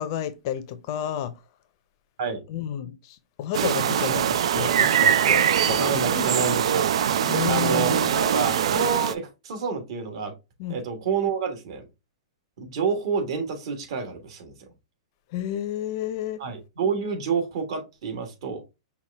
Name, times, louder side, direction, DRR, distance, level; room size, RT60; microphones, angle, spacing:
voice 1, 0.0-1.3 2.5-6.0 7.3-8.1 10.6-10.8 15.3-16.4, left 10 dB, 40° left, 0.6 m, -31 dB
sound 1, 3.5-9.1, right 9 dB, 75° right, 0.4 m, -22 dB
voice 2, 5.7-6.9 7.5-10.3 10.7-11.9 12.6-14.5 16.4-18.6, right 5 dB, 55° right, 1.4 m, -28 dB
5.6 x 2.3 x 3.4 m
hypercardioid pair, 160°, 3 cm